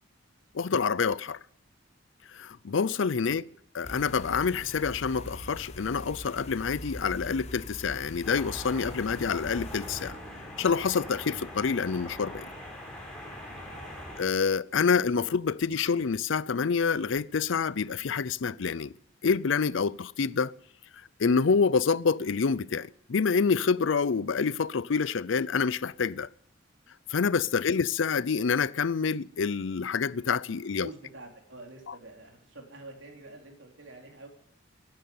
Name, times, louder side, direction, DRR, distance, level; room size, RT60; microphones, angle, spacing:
voice 1, 0.5-1.4 2.3-3.5 3.7-10.2 10.6-12.5 14.2-18.9 19.2-20.5 21.2-26.3 27.1-30.9 31.9-32.0, left 5 dB, 75° left, 0.5 m, -27 dB
voice 2, 3.2-3.6 13.3-14.1 30.5-34.3, right 2 dB, 80° right, 4.0 m, -49 dB
sound 1, 3.8-10.1, left 1 dB, 35° left, 1.1 m, -43 dB
sound 2, 8.2-14.2, left 1 dB, 5° left, 4.4 m, -42 dB
14.0 x 10.5 x 9.5 m
head